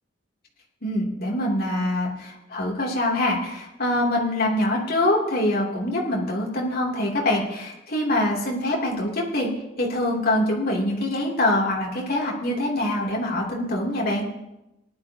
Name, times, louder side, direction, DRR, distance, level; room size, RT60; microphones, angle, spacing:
voice 1, 0.8-9.5 9.8-14.2, left 1 dB, 50° left, -2 dB, 3.0 m, -24 dB
18.5 x 12.0 x 2.9 m, 0.93 s
head